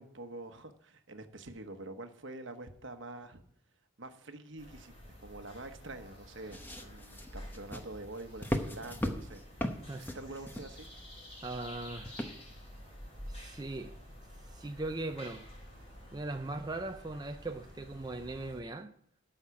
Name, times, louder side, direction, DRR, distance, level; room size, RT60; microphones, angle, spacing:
voice 1, 0.0-3.4 4.0-9.4 10.0-10.9, right 2 dB, 70° right, 1.1 m, -46 dB
sound 1, 4.6-18.6, left 1 dB, 30° left, 4.4 m, -50 dB
sound 2, 6.5-11.2 12.1-12.7 13.3-13.4, equal, 10° left, 0.9 m, -38 dB
voice 2, 11.4-12.2 13.3-13.9 14.5-15.4 16.1-18.9, right 2 dB, 20° right, 0.5 m, -39 dB
13.0 x 5.7 x 5.9 m
head